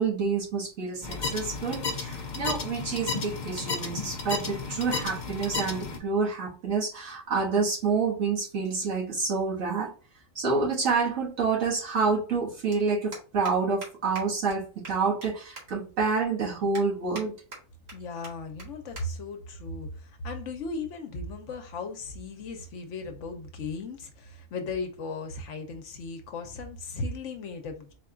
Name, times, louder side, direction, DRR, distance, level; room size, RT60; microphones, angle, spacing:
voice 1, 0.0-9.9 10.3-17.4, right 4 dB, 70° right, 1.7 m, -28 dB
sound 1, 1.0-6.0, left 4 dB, 45° left, 0.6 m, -33 dB
sound 2, 12.7-12.8 13.1-13.5 13.8-13.9 14.2-14.3 14.5-14.6 14.8-15.3 15.6-15.7 16.1-16.2 16.7-17.2 17.5-17.9 18.2-18.3 18.6-18.7 19.0-19.1 19.4-19.6 20.4-20.6, right 2 dB, 50° right, 1.6 m, -42 dB
voice 2, 17.9-27.9, left 3 dB, 65° left, 1.0 m, -36 dB
4.2 x 2.3 x 3.7 m
omnidirectional pair, 1.4 m